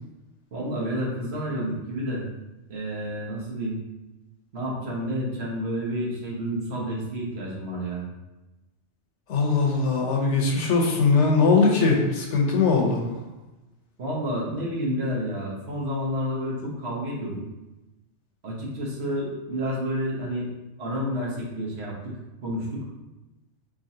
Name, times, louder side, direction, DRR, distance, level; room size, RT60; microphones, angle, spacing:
voice 1, 0.5-2.3 2.7-3.8 4.5-8.1 14.0-17.4 18.4-20.5 20.8-22.9, equal, 60° right, -4 dB, 1.3 m, -30 dB
voice 2, 9.3-13.0, left 4 dB, 75° left, 0 dB, 1.1 m, -21 dB
4.1 x 3.7 x 2.7 m, 1.0 s
omnidirectional pair, 1.2 m